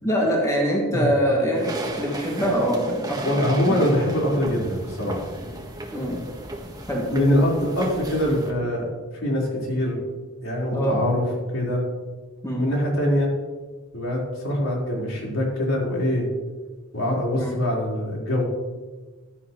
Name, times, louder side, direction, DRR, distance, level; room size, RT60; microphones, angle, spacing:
voice 1, 0.0-3.9 5.9-6.2 6.9-7.0 10.7-11.0 12.4-12.6 17.3-17.5, equal, 15° left, -2 dB, 2.3 m, -24 dB
sound 1, 1.5-8.5, right 1 dB, 20° right, 1.5 m, -35 dB
voice 2, 3.2-5.3 7.1-8.9 9.2-10.0 10.4-11.2 11.5-11.8 12.5-13.3 13.9-16.3 16.9-18.4, left 1 dB, 80° left, -4 dB, 4.5 m, -23 dB
15.5 x 12.0 x 3.2 m, 1.3 s
head